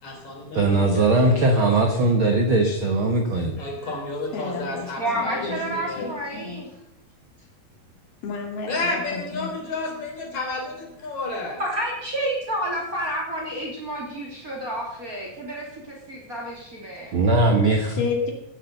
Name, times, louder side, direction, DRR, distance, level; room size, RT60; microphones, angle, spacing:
voice 1, 0.0-1.8 3.6-6.1 8.7-11.6, left 2 dB, 50° left, 1 dB, 4.5 m, -31 dB
voice 2, 0.5-3.5 17.1-18.0, right 2 dB, 60° right, 4 dB, 1.4 m, -20 dB
voice 3, 4.3-6.6 8.2-9.7 18.0-18.3, left 5 dB, 80° left, 2 dB, 4.2 m, -32 dB
voice 4, 5.0-6.7 11.6-17.1, right 1 dB, 25° right, -2 dB, 3.2 m, -30 dB
16.0 x 8.4 x 6.8 m, 0.82 s
omnidirectional pair, 4.3 m